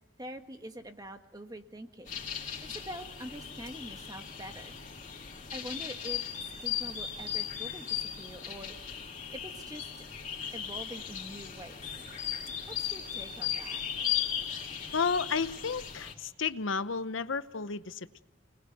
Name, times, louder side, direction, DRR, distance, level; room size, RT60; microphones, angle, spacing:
voice 1, 0.2-2.2 2.6-4.8 5.5-6.2 6.6-9.0 9.3-9.9 10.5-11.8 12.7-13.8, right 1 dB, 20° right, 6 dB, 1.6 m, -45 dB
sound 1, 2.1-16.1, left 9 dB, 40° left, 4.0 m, -37 dB
voice 2, 14.9-18.2, left 5 dB, 80° left, 13 dB, 0.9 m, -32 dB
29.5 x 20.0 x 8.1 m, 1.1 s
head